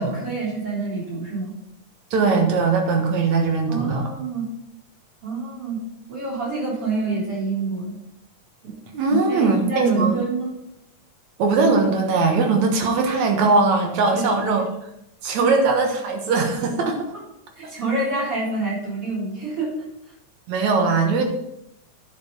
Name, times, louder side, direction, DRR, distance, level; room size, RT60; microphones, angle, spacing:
voice 1, 0.0-1.5 3.7-4.4 5.2-5.8 6.1-8.0 8.6-8.8 9.1-10.5 14.1-14.3 14.6-14.7 15.4-15.5 17.6-19.7, right 3 dB, 45° right, -7 dB, 4.7 m, -27 dB
voice 2, 2.1-4.1 8.9-10.1 11.4-14.7 15.2-17.1 20.5-21.2, right 4 dB, 70° right, 3 dB, 2.6 m, -20 dB
10.0 x 5.3 x 5.3 m, 0.81 s
omnidirectional pair, 3.6 m